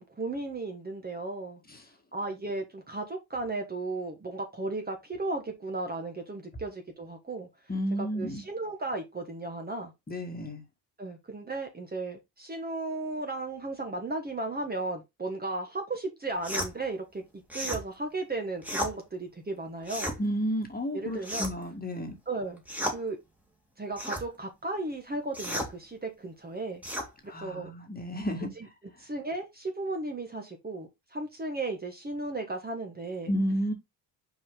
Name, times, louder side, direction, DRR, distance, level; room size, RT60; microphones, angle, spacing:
voice 1, 0.0-1.6 2.1-7.5 8.0-9.9 11.0-17.2 17.5-20.1 20.9-21.5 22.3-22.6 22.9-23.2 23.8-26.8 27.2-27.7 28.6-28.7 29.0-33.3, right 2 dB, 20° right, 1.4 m, -35 dB
voice 2, 7.7-8.4 10.1-10.6 20.2-22.2 27.3-28.5 33.3-33.7, equal, 20° left, 1.8 m, -31 dB
sound 1, 16.4-16.7 17.5-17.8 18.6-18.9 19.8-20.2 21.2-21.7 22.7-23.0 24.0-24.3 25.3-25.7 26.8-27.1, equal, 5° right, 2.0 m, -33 dB
5.5 x 4.9 x 3.7 m
cardioid pair, 110°, 46 cm